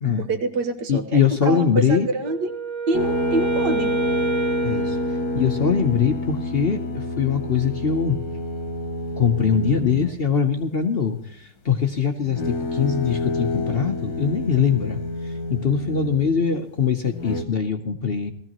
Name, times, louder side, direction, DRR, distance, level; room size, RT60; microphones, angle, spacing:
voice 1, 0.1-2.6 2.9-3.9, right 2 dB, 80° right, 7 dB, 1.8 m, -26 dB
voice 2, 0.9-2.1 4.6-5.0 5.3-8.2 9.2-18.3, left 6 dB, 50° left, 5 dB, 0.8 m, -22 dB
Wind instrument woodwind instrument, 2.2-6.1, right 3 dB, 35° right, 0.4 m, -28 dB
sound 1, 2.9-10.3 12.2-16.4 17.1-17.4, left 2 dB, 65° left, 1.6 m, -28 dB
17.5 x 14.5 x 3.0 m, 0.71 s
omnidirectional pair, 1.8 m